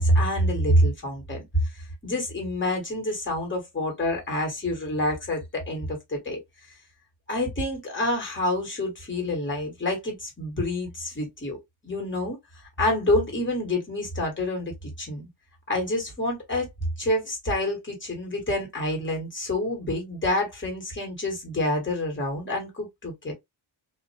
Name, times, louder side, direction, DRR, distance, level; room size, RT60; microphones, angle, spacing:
voice 1, 0.0-1.4 2.0-6.4 7.3-11.6 11.8-12.4 12.8-15.3 15.7-16.7 17.0-23.3, left 1 dB, 25° left, 1.2 m, -27 dB
2.4 x 2.1 x 2.4 m
wide cardioid pair, 105°, 49 cm